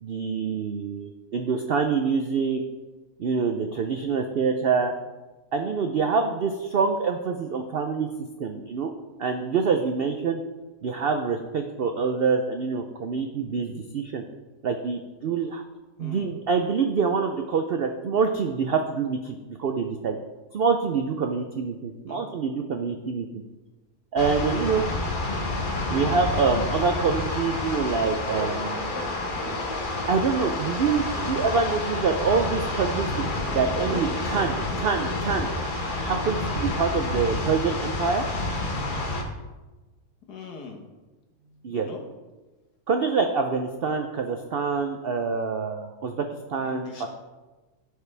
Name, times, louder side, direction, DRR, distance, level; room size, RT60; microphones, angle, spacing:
voice 1, 0.0-2.6 3.2-4.9 5.5-8.1 8.4-8.9 9.2-10.4 10.8-14.2 14.6-15.6 16.0-20.2 20.5-23.4 24.1-24.8 25.9-28.9 30.1-33.3 33.5-35.5 36.0-38.3 41.6-41.9 42.9-47.1, right 5 dB, 75° right, 5 dB, 0.5 m, -26 dB
voice 2, 16.0-16.3 22.1-22.2 40.3-40.8 41.3-42.0 46.6-47.1, left 4 dB, 80° left, 1 dB, 1.8 m, -42 dB
sound 1, 24.2-39.2, left 2 dB, 35° left, 1.0 m, -29 dB
sound 2, 27.3-37.8, equal, 25° right, 3.0 m, -39 dB
15.0 x 5.0 x 3.3 m, 1.2 s
omnidirectional pair, 1.7 m